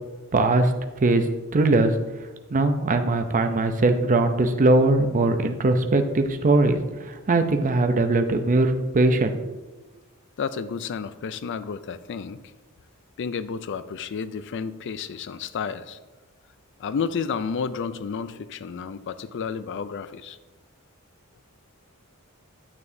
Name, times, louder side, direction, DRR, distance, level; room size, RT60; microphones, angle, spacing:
voice 1, 0.3-0.7 1.0-1.3 1.5-1.9 2.5-9.3, right 2 dB, 35° right, 7 dB, 0.6 m, -20 dB
voice 2, 10.4-12.4 13.2-16.0 16.8-20.4, left 6 dB, 55° left, 13 dB, 0.4 m, -31 dB
9.7 x 7.0 x 2.7 m, 1.2 s
head